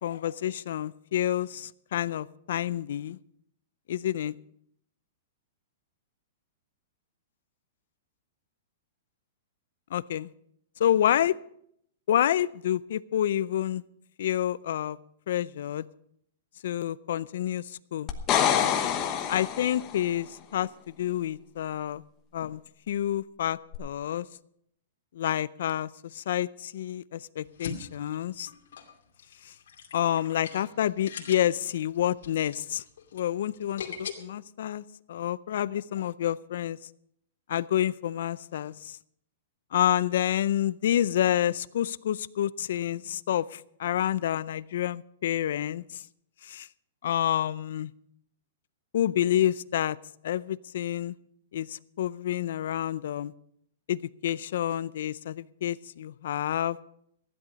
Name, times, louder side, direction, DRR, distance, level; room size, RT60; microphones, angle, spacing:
voice 1, 0.0-3.2 3.9-4.3 9.9-10.3 10.8-11.3 12.1-13.8 14.2-15.0 15.3-15.9 16.6-18.1 19.3-22.0 22.3-22.6 22.9-24.3 25.1-28.5 29.4-29.5 29.9-32.8 33.1-36.8 37.5-39.0 39.7-46.0 46.4-46.7 47.0-47.9 48.9-50.0 50.2-51.2 51.5-53.3 53.9-56.8, left 11 dB, 60° left, 19 dB, 0.4 m, -28 dB
sound 1, 18.1-20.0 23.7-23.8, left 9 dB, 20° left, 1.0 m, -26 dB
sound 2, 27.4-34.1, left 6 dB, 75° left, 2.5 m, -42 dB
15.5 x 11.0 x 5.2 m, 0.71 s
hypercardioid pair, 170°, 0 cm